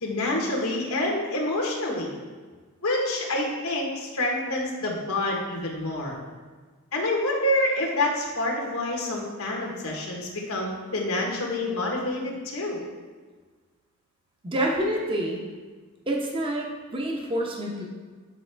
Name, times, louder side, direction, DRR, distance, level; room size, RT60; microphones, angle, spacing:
voice 1, 0.0-2.2 2.8-6.2 6.9-12.8, left 1 dB, 90° left, -2 dB, 1.3 m, -27 dB
voice 2, 14.4-15.5 16.1-17.9, right 1 dB, 25° right, -1 dB, 0.8 m, -28 dB
8.9 x 4.2 x 3.3 m, 1.4 s
head